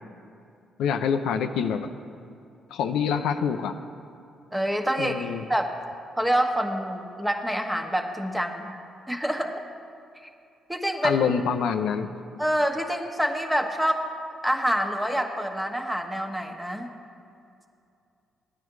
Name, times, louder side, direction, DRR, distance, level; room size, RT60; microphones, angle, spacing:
voice 1, 0.8-1.9 2.7-3.8 5.0-5.4 11.0-12.1, left 7 dB, 85° left, 6 dB, 0.5 m, -26 dB
voice 2, 4.5-5.7 6.2-8.8 9.1-9.6 10.7-11.2 12.4-14.0 14.4-16.9, equal, 5° right, 4 dB, 1.2 m, -26 dB
14.0 x 9.7 x 4.7 m, 2.6 s
supercardioid pair, 70°, 0 cm